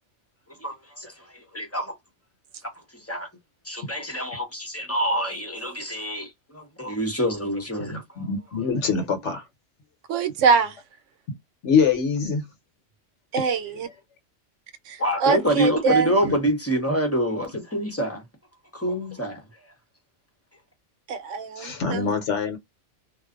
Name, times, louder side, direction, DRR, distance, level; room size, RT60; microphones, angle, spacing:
voice 1, 0.6-2.0 2.9-3.3 3.6-8.3 15.0-18.2 18.7-19.4, equal, 15° left, 0.6 m, -26 dB
voice 2, 7.8-9.4 11.3-11.4 11.6-12.4 21.6-22.6, left 5 dB, 75° left, 1.1 m, -24 dB
voice 3, 10.1-10.8 13.3-13.9 14.9-16.1 21.1-22.1, right 5 dB, 90° right, 1.0 m, -23 dB
2.5 x 2.0 x 2.4 m
omnidirectional pair, 1.3 m